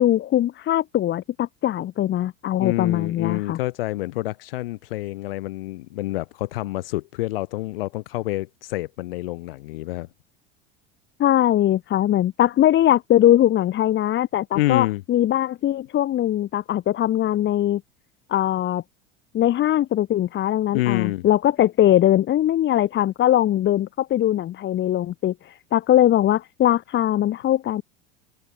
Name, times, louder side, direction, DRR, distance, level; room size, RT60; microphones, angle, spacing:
voice 1, 0.0-3.6 11.2-17.8 18.3-18.8 19.3-27.8, left 12 dB, 40° left, 1.8 m, -21 dB
voice 2, 2.6-10.1 14.5-15.0 20.7-21.3, left 18 dB, 70° left, 4.5 m, -27 dB
hypercardioid pair, 80°, 30 cm